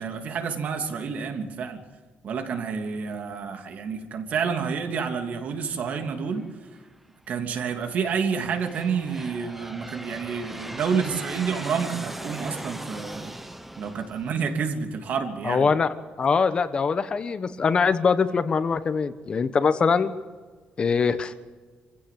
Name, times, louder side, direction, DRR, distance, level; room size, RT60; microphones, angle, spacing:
voice 1, 0.0-1.8 2.2-6.5 7.3-13.3 13.8-15.7, right 6 dB, 60° right, 5 dB, 3.0 m, -29 dB
Aircraft, 6.3-6.9 7.6-15.2, right 1 dB, 5° right, 1.1 m, -40 dB
voice 2, 15.4-15.9 16.2-20.1 20.8-21.3, left 5 dB, 35° left, 11 dB, 1.2 m, -23 dB
26.0 x 16.0 x 7.7 m, 1.4 s
cardioid pair, 135°, 3 cm